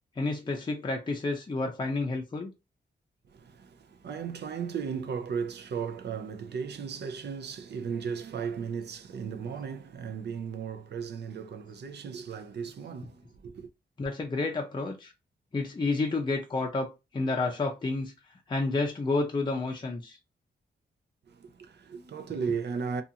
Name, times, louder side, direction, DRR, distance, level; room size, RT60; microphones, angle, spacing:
voice 1, 0.2-2.5 14.0-15.1 15.5-18.1 18.5-20.2, left 3 dB, 25° left, 0.5 m, -30 dB
voice 2, 3.3-13.7 21.3-23.0, right 6 dB, 65° right, 0.5 m, -36 dB
2.5 x 2.4 x 2.7 m
wide cardioid pair, 115°, 19 cm